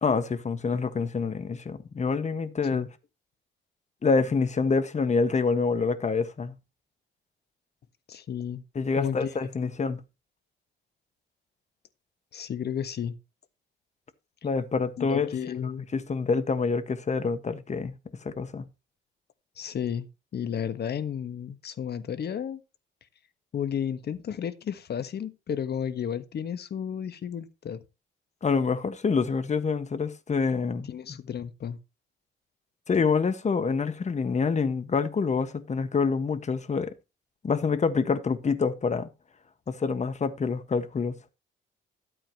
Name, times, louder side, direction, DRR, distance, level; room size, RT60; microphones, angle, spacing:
voice 1, 0.0-2.9 4.0-6.6 8.7-10.0 14.4-15.3 15.6-18.0 18.2-18.7 28.4-30.9 32.9-36.9 37.4-39.1 39.7-41.2, left 5 dB, 35° left, 1.6 m, -26 dB
voice 2, 8.1-8.6 8.9-9.3 12.3-13.2 15.0-15.9 19.6-20.1 20.3-22.6 23.5-27.8 30.9-31.8, left 8 dB, 55° left, 1.4 m, -32 dB
12.5 x 8.7 x 3.0 m
cardioid pair, 90°, 20 cm